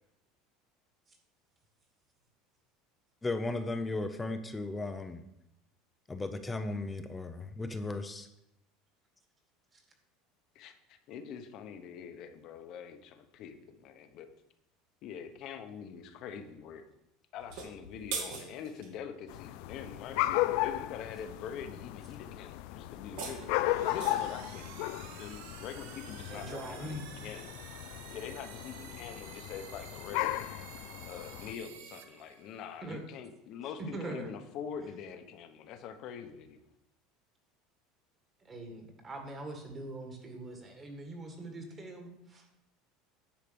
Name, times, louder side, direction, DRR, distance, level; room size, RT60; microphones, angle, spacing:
voice 1, 3.2-5.2 6.1-8.3, left 2 dB, 10° left, 8 dB, 0.6 m, -36 dB
voice 2, 10.5-14.3 15.0-16.8 17.3-27.5 28.1-30.5 31.0-36.6, left 7 dB, 45° left, 8 dB, 1.0 m, -44 dB
sound 1, 17.4-18.9 22.9-24.4, right 5 dB, 65° right, 2.3 m, -41 dB
sound 2, 19.3-31.5, left 15 dB, 65° left, 0.4 m, -36 dB
sound 3, 23.1-32.8, right 8 dB, 80° right, 1.1 m, -51 dB
voice 3, 26.3-27.1 32.8-33.0 33.8-34.3 38.4-42.4, right 2 dB, 20° right, 3 dB, 1.8 m, -42 dB
10.5 x 4.9 x 6.9 m, 0.85 s
cardioid pair, 160°, 0 cm